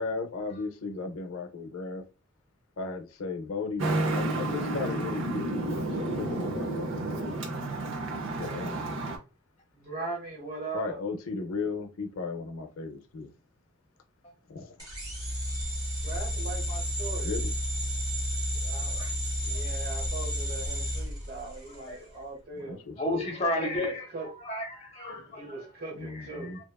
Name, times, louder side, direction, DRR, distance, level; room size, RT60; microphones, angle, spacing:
voice 1, 0.0-2.0 2.8-7.4 8.3-9.1 10.7-13.3 14.5-14.7 17.2-17.5 22.5-23.3 25.9-26.6, left 4 dB, 80° left, 0.5 m, -36 dB
Traffic noise roadway noise, 3.8-9.2, right 2 dB, 65° right, 0.6 m, -31 dB
voice 2, 9.7-11.0 16.0-17.3 18.5-19.0 19.4-22.8 23.7-24.3 25.3-26.5, right 3 dB, 45° right, 1.1 m, -40 dB
sound 1, 14.8-21.9, equal, 20° right, 1.0 m, -32 dB
voice 3, 23.0-24.1 24.4-25.6, left 1 dB, 30° left, 0.8 m, -32 dB
2.8 x 2.3 x 2.2 m
head